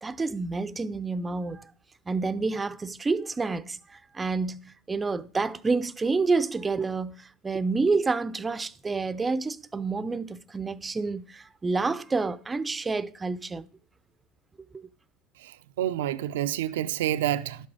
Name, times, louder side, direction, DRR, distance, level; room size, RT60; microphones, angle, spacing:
voice 1, 0.0-1.7 2.1-13.7 14.7-14.8, right 4 dB, 20° right, 0.5 m, -29 dB
voice 2, 15.4-17.7, right 12 dB, 80° right, 0.5 m, -28 dB
11.5 x 7.8 x 3.6 m
hypercardioid pair, 90°, 0 cm